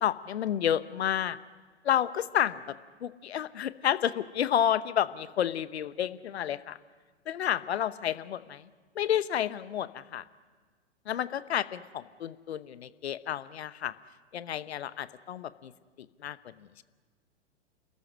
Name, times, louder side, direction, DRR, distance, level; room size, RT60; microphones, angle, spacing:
voice 1, 0.0-1.4 1.8-2.6 3.0-6.8 7.3-8.6 9.0-10.2 11.1-13.9 14.3-15.7 16.2-16.4, left 10 dB, 65° left, 15 dB, 1.0 m, -30 dB
29.0 x 14.0 x 9.9 m, 1.5 s
figure-of-eight pair, 110°, 35 cm